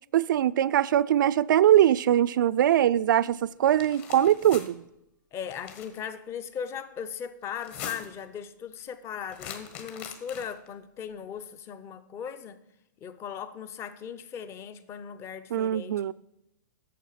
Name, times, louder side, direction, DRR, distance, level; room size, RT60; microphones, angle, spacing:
voice 1, 0.1-4.8 15.5-16.1, right 11 dB, 70° right, 0.4 m, -22 dB
sound 1, 3.6-4.7 5.4-6.0 7.5-8.2 9.3-10.7, left 7 dB, 40° left, 1.4 m, -42 dB
voice 2, 5.3-12.6 13.0-16.1, left 8 dB, 25° left, 0.6 m, -38 dB
8.5 x 7.0 x 5.7 m
hypercardioid pair, 135°, 11 cm